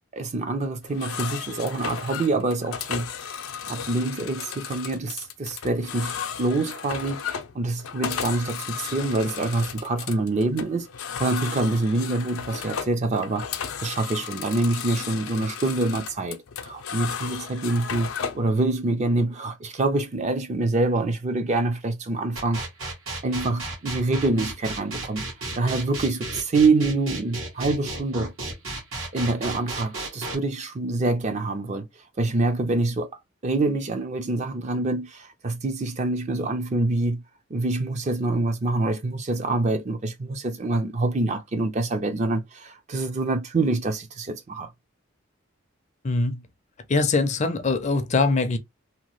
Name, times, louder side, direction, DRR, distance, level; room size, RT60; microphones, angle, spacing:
voice 1, 0.1-3.1 3.7-10.9 11.2-13.4 13.8-22.6 23.2-25.2 25.5-28.3 29.1-31.9 32.2-33.1 33.4-37.2 37.5-44.7, right 2 dB, 35° right, 0.5 m, -26 dB
sound 1, 0.8-18.5, left 7 dB, 85° left, 0.5 m, -34 dB
sound 2, 22.4-30.4, right 2 dB, 85° right, 1.4 m, -33 dB
voice 2, 46.0-46.4 46.9-48.6, left 3 dB, 35° left, 0.4 m, -22 dB
2.9 x 2.2 x 3.0 m
head